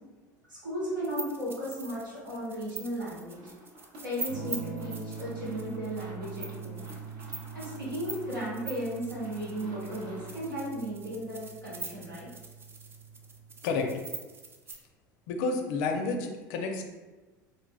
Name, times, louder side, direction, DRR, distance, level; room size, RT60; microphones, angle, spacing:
voice 1, 0.5-3.5 4.0-6.8 7.5-12.3, equal, 90° right, -8 dB, 1.1 m, -35 dB
sound 1, 1.0-14.7, right 4 dB, 25° right, 0.4 m, -43 dB
sound 2, 3.2-10.5, equal, 55° right, 0.9 m, -52 dB
Electric guitar / Strum, 4.3-14.0, right 6 dB, 75° right, 0.5 m, -44 dB
voice 2, 15.3-16.8, left 4 dB, 60° left, 3 dB, 0.4 m, -30 dB
3.3 x 2.1 x 2.2 m, 1.2 s
hypercardioid pair, 70°, 10 cm